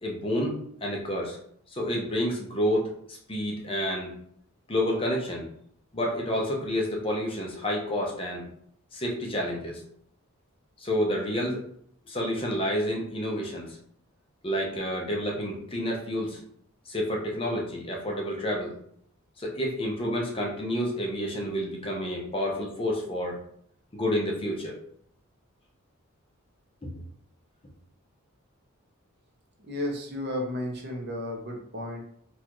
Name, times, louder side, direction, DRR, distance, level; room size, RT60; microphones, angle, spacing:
voice 1, 0.0-1.4 1.7-4.1 4.7-5.5 5.9-8.5 8.9-9.8 10.8-11.6 12.1-13.8 14.4-16.4 16.9-18.7 19.4-23.4 23.9-24.8, equal, 25° left, -1 dB, 0.6 m, -29 dB
voice 2, 29.6-32.0, left 1 dB, 50° right, 1 dB, 0.7 m, -33 dB
4.0 x 2.4 x 2.9 m, 0.65 s
head